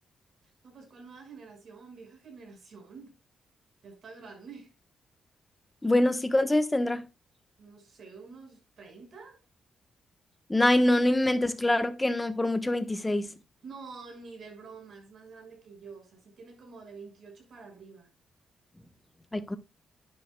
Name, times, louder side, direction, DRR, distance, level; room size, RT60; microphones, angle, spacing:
voice 1, 0.4-3.1 3.8-4.7 7.6-9.4 13.6-18.1, right 4 dB, 55° right, 6.0 m, -48 dB
voice 2, 5.8-7.1 10.5-13.4 19.3-19.6, left 1 dB, 10° left, 1.2 m, -25 dB
11.5 x 10.0 x 2.3 m
cardioid pair, 140°, 0 cm